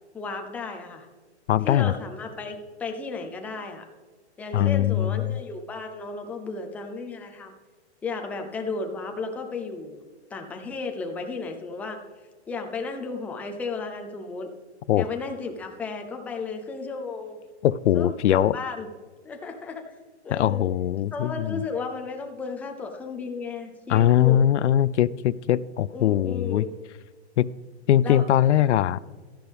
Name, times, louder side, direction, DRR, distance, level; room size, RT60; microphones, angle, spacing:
voice 1, 0.1-1.1 1.6-3.8 4.4-7.5 8.0-10.0 10.3-12.0 12.5-14.5 15.0-17.4 17.9-18.9 19.2-19.9 20.2-20.7 21.1-24.4 25.9-26.7 28.0-28.3, left 4 dB, 5° left, 0.5 m, -34 dB
voice 2, 1.5-1.9 4.5-5.4 14.9-15.1 17.6-18.6 20.3-21.6 23.9-26.7 27.4-27.5 27.9-29.0, left 11 dB, 85° left, 0.5 m, -21 dB
13.0 x 10.5 x 3.5 m
hypercardioid pair, 145°, 34 cm